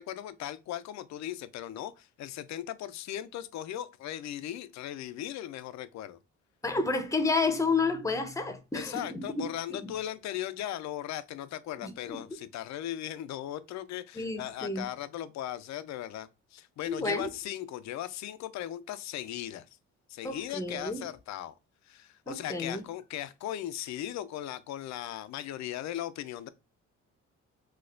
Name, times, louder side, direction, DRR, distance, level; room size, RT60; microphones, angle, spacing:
voice 1, 0.0-6.2 8.7-19.7 20.1-21.5 21.8-26.5, left 12 dB, 65° left, 0.4 m, -38 dB
voice 2, 6.6-9.4 11.8-12.2 14.2-14.9 16.9-17.3 20.2-21.0 22.3-22.8, left 3 dB, 10° left, 0.6 m, -30 dB
4.1 x 2.3 x 2.4 m
cardioid pair, 90°, 30 cm